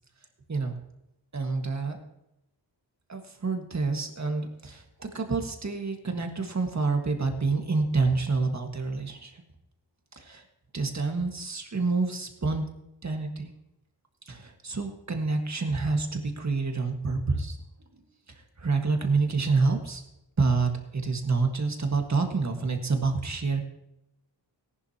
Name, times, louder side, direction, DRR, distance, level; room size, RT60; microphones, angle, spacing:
voice 1, 1.3-2.0 3.1-9.4 10.1-10.4 10.7-12.6 13.0-13.5 14.3-17.6 18.3-20.0 20.4-23.6, right 4 dB, 35° right, 4 dB, 1.7 m, -28 dB
18.0 x 11.0 x 2.9 m, 0.85 s
wide cardioid pair, 125°, 45 cm